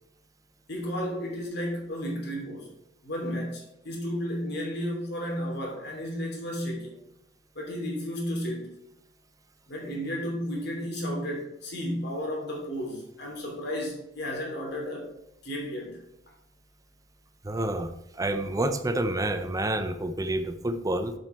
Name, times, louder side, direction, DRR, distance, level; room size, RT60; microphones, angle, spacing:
voice 1, 0.7-2.7 3.0-7.0 7.5-8.7 9.7-15.1 15.4-16.0, equal, 60° left, 0 dB, 2.9 m, -33 dB
voice 2, 17.4-21.1, right 1 dB, 20° right, 8 dB, 0.8 m, -29 dB
8.0 x 7.3 x 4.5 m, 0.83 s
head